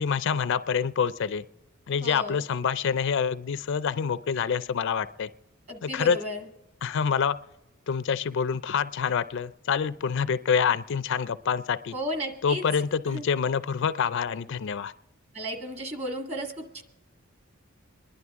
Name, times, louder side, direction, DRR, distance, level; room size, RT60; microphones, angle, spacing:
voice 1, 0.0-1.4 1.9-5.3 5.8-6.2 6.8-7.4 7.9-11.9 12.4-14.9, left 6 dB, 60° left, 14 dB, 0.4 m, -26 dB
voice 2, 2.0-2.4 5.7-6.5 11.9-12.6 13.1-13.3 15.3-16.8, equal, 30° right, 4 dB, 1.7 m, -34 dB
25.5 x 11.0 x 3.6 m, 1.0 s
head